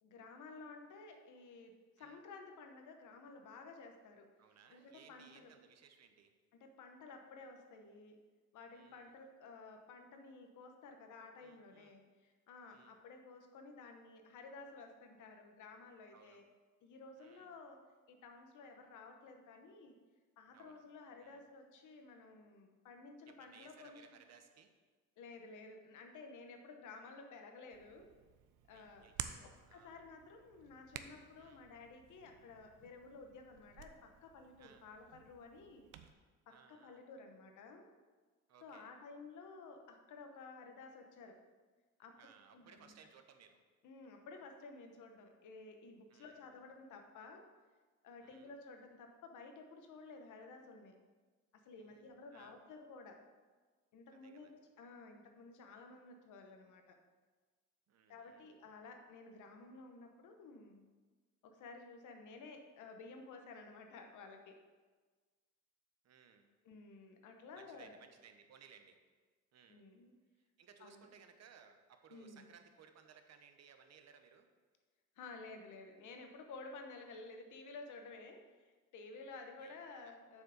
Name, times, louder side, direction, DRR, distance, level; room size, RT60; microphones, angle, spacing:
voice 1, 0.0-4.3 4.7-5.5 6.5-8.2 8.5-16.4 16.8-17.8 18.1-20.0 20.4-24.0 25.2-28.1 28.7-29.1 29.4-35.9 36.5-37.9 38.6-41.4 42.0-42.1 42.5-42.9 43.8-47.5 48.0-51.0 51.5-53.2 53.9-57.0 58.1-60.9 61.4-64.6 66.6-67.9 69.7-70.2 70.8-71.1 72.1-72.5 75.2-80.4, left 3 dB, 80° left, 4 dB, 1.1 m, -54 dB
voice 2, 4.4-6.4 8.7-9.1 11.4-12.0 12.7-13.0 16.1-16.4 17.2-17.6 20.5-20.8 21.2-21.4 23.3-24.7 28.7-30.0 31.4-31.6 34.6-34.9 36.5-37.0 38.5-38.9 42.2-43.6 46.1-46.5 48.2-48.5 51.8-52.6 54.1-54.5 57.9-58.6 66.0-66.5 67.6-69.0 69.5-69.8 70.4-74.5 79.6-79.8 80.0-80.1, right 7 dB, 60° right, 7 dB, 0.9 m, -63 dB
Hands, 27.7-36.1, right 10 dB, 90° right, 0.6 m, -52 dB
7.1 x 4.6 x 6.6 m, 1.4 s
cardioid pair, 90°, 30 cm